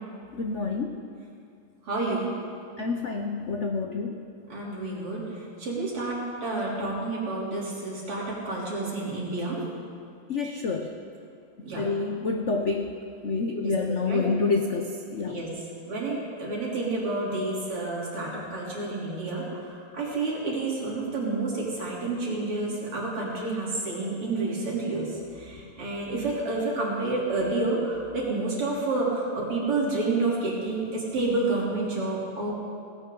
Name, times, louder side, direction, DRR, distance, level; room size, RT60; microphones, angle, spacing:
voice 1, 0.3-1.0 2.8-4.2 10.3-10.9 11.8-12.9 13.2-15.4, left 4 dB, 80° left, 4 dB, 0.6 m, -28 dB
voice 2, 1.9-2.3 4.5-5.2 5.6-9.6 11.6-11.8 13.5-14.7 15.2-15.5 15.9-19.6 19.9-25.1 25.4-32.5, right 2 dB, 85° right, -5 dB, 4.2 m, -29 dB
18.0 x 16.5 x 3.9 m, 2.4 s
omnidirectional pair, 2.4 m